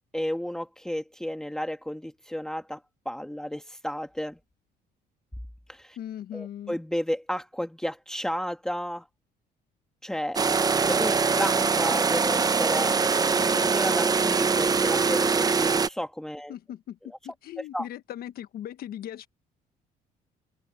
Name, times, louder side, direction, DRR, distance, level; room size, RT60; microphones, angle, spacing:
voice 1, 0.1-2.8 3.0-4.4 5.7-6.0 6.3-9.1 10.0-10.4 10.9-16.5 17.7-17.9, equal, 5° left, 1.6 m, -32 dB
voice 2, 6.0-6.8 16.5-19.3, left 11 dB, 65° left, 1.4 m, -39 dB
sound 1, 10.4-15.9, right 5 dB, 20° right, 0.7 m, -23 dB
cardioid pair, 110°, 17 cm